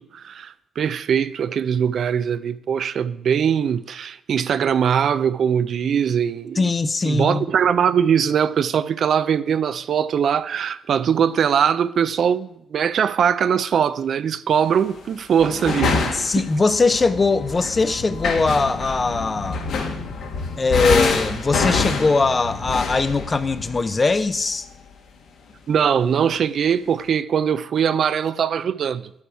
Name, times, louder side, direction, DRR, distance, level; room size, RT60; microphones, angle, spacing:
voice 1, 0.1-6.7 7.0-16.5 25.7-29.1, right 8 dB, 60° right, 0.4 m, -21 dB
voice 2, 6.6-7.4 16.1-19.7 20.6-24.7, left 3 dB, 30° left, 0.6 m, -21 dB
sound 1, 14.8-15.0 15.4-24.5, left 4 dB, 70° left, 1.7 m, -26 dB
11.0 x 7.1 x 4.7 m
cardioid pair, 90°, 0 cm